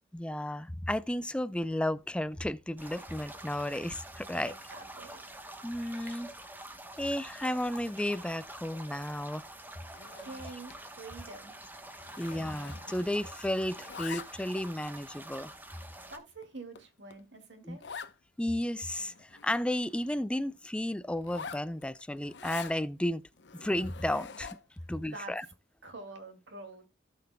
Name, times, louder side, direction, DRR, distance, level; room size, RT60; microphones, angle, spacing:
voice 1, 0.1-4.5 5.6-6.3 7.0-9.4 12.2-15.5 17.6-17.8 18.4-23.2 23.5-24.6 24.9-25.5, left 1 dB, 5° left, 0.4 m, -33 dB
sound 1, 2.8-16.2, right 1 dB, 10° right, 1.0 m, -47 dB
voice 2, 4.3-5.2 10.2-11.6 16.1-17.8 24.8-25.3 25.8-26.9, right 3 dB, 85° right, 2.3 m, -46 dB
Zipper (clothing), 9.8-10.8 11.1-11.4 11.6-13.3 13.6-14.6 15.2-15.3 15.9-16.0 16.4-16.5 16.7-16.8 17.1-17.2 17.8-18.1 18.6-18.7 18.9-20.2 21.2-22.8 23.4-24.8, left 6 dB, 65° left, 0.7 m, -45 dB
17.5 x 5.8 x 2.2 m
head